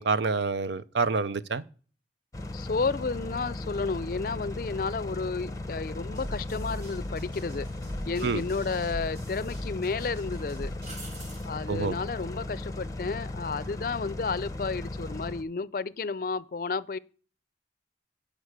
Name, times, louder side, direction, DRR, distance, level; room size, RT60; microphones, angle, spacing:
voice 1, 0.0-1.6 8.2-8.4 11.7-11.9, right 4 dB, 85° right, 0.6 m, -27 dB
sound 1, 2.3-15.4, left 2 dB, 20° left, 0.7 m, -37 dB
voice 2, 2.5-7.7 8.0-10.7 11.4-17.0, left 4 dB, 50° left, 0.4 m, -32 dB
sound 2, 6.2-11.5, equal, 60° right, 4.7 m, -41 dB
sound 3, 8.7-9.4 9.8-9.9 10.8-11.5 14.6-15.0, right 2 dB, 40° right, 2.4 m, -46 dB
11.5 x 5.1 x 6.6 m
head